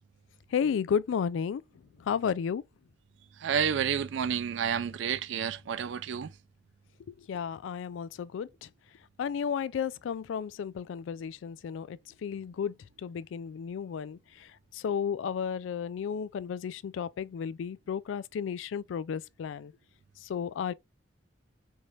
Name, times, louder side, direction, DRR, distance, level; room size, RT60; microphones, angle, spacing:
voice 1, 0.5-1.6 2.0-2.6 7.1-8.7 9.2-19.7 20.2-20.7, left 7 dB, 90° left, 0.3 m, -33 dB
voice 2, 3.4-6.4, right 7 dB, 75° right, 0.4 m, -30 dB
4.5 x 3.2 x 2.4 m
head